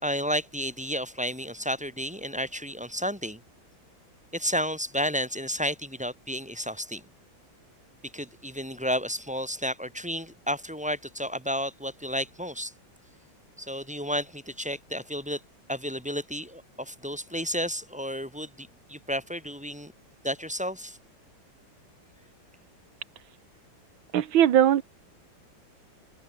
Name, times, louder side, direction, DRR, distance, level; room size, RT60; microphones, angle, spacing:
voice 1, 0.0-3.4 4.3-7.0 8.1-12.7 13.6-15.4 15.7-19.9 20.2-21.0, equal, 5° right, 4.7 m, -32 dB
voice 2, 24.1-24.8, right 10 dB, 80° right, 1.9 m, -19 dB
omnidirectional pair, 2.2 m